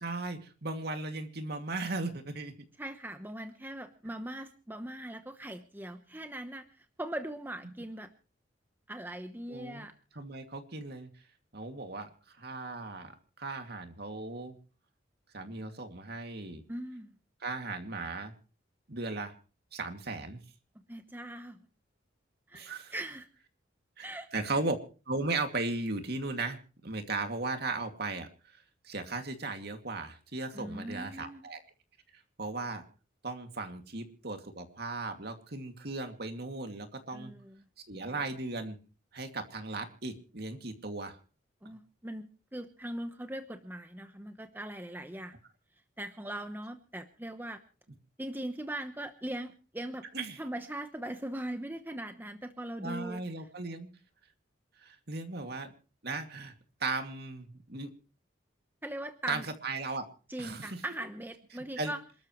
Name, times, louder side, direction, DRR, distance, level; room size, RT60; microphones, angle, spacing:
voice 1, 0.0-2.5 7.7-7.8 9.5-9.9 10.1-11.1 11.5-14.6 15.3-16.6 17.4-18.3 18.9-19.3 19.7-20.4 22.5-22.9 24.0-24.1 24.3-24.8 25.1-28.6 28.8-31.6 32.1-32.8 33.2-37.3 37.9-38.8 39.1-41.2 50.1-50.4 52.8-53.9 54.8-55.7 56.0-56.5 56.8-57.9 59.3-60.1 60.4-60.8 61.8-61.9, right 3 dB, 55° right, 6 dB, 2.4 m, -37 dB
voice 2, 2.8-8.1 8.9-9.9 16.7-17.1 20.9-21.6 22.5-23.3 24.0-24.5 30.5-31.4 37.1-37.7 41.6-42.3 42.5-45.4 46.0-47.6 48.2-50.0 50.4-53.2 58.8-59.5 60.3-62.0, right 1 dB, 10° right, 7 dB, 1.0 m, -40 dB
27.5 x 13.0 x 3.2 m, 0.36 s
head